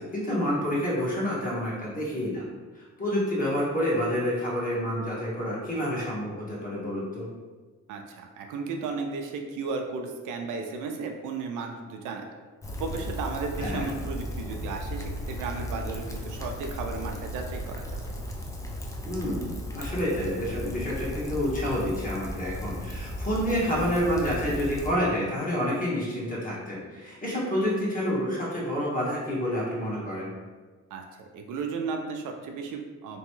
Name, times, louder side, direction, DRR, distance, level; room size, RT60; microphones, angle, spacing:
voice 1, 0.0-2.4 2.7-7.2 13.6-13.9 19.0-30.3, equal, 25° left, -6 dB, 1.2 m, -28 dB
voice 2, 7.9-12.3 12.8-17.8 30.9-33.2, right 4 dB, 80° right, 3 dB, 0.5 m, -34 dB
Rain, 12.6-24.9, left 1 dB, 10° left, 0.4 m, -35 dB
3.0 x 2.2 x 3.0 m, 1.4 s
cardioid pair, 90°, 30 cm